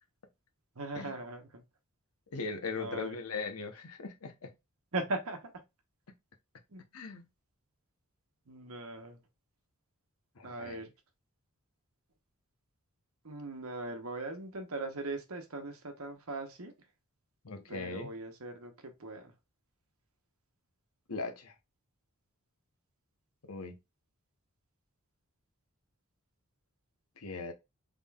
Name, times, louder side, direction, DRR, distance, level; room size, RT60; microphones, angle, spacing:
voice 1, 0.7-1.6 2.8-3.4 4.9-5.5 6.7-6.8 8.5-9.2 10.4-10.9 13.2-16.7 17.7-19.3, right 2 dB, 70° right, 1.0 m, -40 dB
voice 2, 2.3-4.5 6.9-7.2 10.4-10.8 17.4-18.1 21.1-21.5 23.5-23.8 27.2-27.5, left 4 dB, 75° left, 0.9 m, -39 dB
3.7 x 3.6 x 2.3 m
head